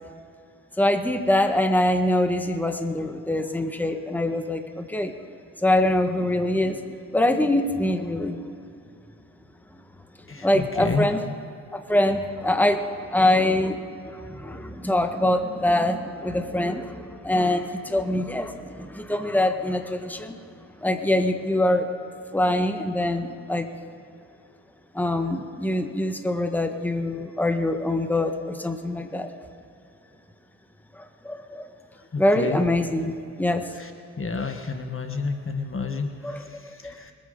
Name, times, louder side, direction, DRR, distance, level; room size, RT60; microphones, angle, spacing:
voice 1, 0.8-5.1 5.6-8.4 10.4-11.2 11.7-20.4 20.8-21.9 22.3-23.7 24.9-29.3 30.9-31.7 32.2-33.7 36.2-36.8, left 1 dB, 5° left, 6 dB, 1.7 m, -24 dB
voice 2, 10.3-11.1 31.9-32.6 33.7-33.9 34.2-37.1, left 4 dB, 30° left, 5 dB, 1.6 m, -30 dB
25.5 x 9.2 x 4.0 m, 2.5 s
hypercardioid pair, 40°, 41 cm